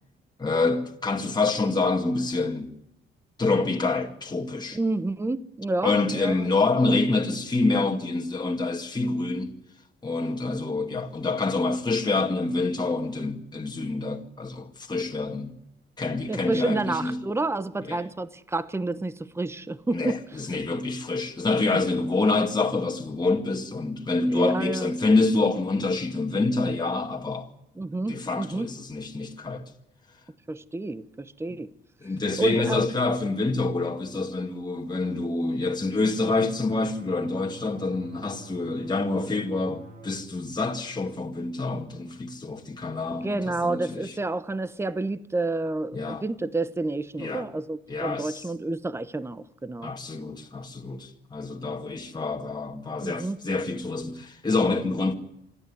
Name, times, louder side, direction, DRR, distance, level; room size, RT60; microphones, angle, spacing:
voice 1, 0.4-2.7 3.4-4.8 5.8-9.6 10.0-15.6 16.0-17.2 17.9-18.0 19.9-27.5 28.1-29.7 32.0-44.1 45.9-46.2 47.2-47.5 47.9-48.4 49.8-55.1, left 3 dB, 20° left, 2.1 m, -27 dB
voice 2, 4.7-6.5 16.3-20.2 21.7-21.8 24.3-24.9 27.8-28.7 30.5-31.7 32.4-32.8 43.2-49.9 53.0-53.4, right 2 dB, 15° right, 1.0 m, -29 dB
sound 1, 36.0-40.2, right 2 dB, 90° right, 5.8 m, -47 dB
26.0 x 12.0 x 9.6 m
cardioid pair, 90°, 20 cm